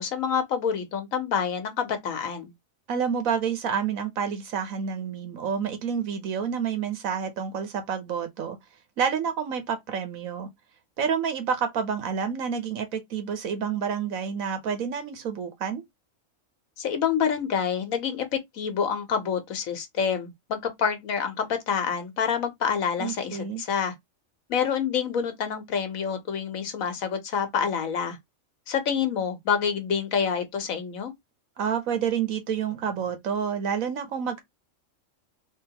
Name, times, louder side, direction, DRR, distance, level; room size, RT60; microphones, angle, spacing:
voice 1, 0.0-2.5 16.8-23.9 24.5-28.2 28.7-31.1, left 7 dB, 85° left, 1.4 m, -27 dB
voice 2, 2.9-8.6 9.0-10.5 11.0-15.8 23.0-23.6 31.6-34.4, right 7 dB, 90° right, 1.4 m, -29 dB
3.8 x 3.0 x 2.8 m
omnidirectional pair, 1.4 m